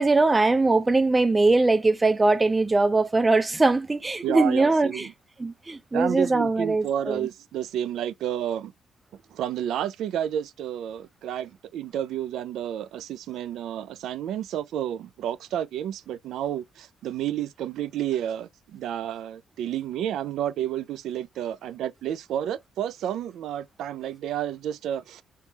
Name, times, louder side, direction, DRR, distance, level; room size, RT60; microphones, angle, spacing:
voice 1, 0.0-5.1 5.4-7.3, right 3 dB, 20° right, 0.5 m, -21 dB
voice 2, 4.2-5.1 5.9-8.7 9.3-25.2, right 10 dB, 80° right, 0.4 m, -30 dB
3.3 x 3.3 x 2.9 m
cardioid pair, 90°, 0 cm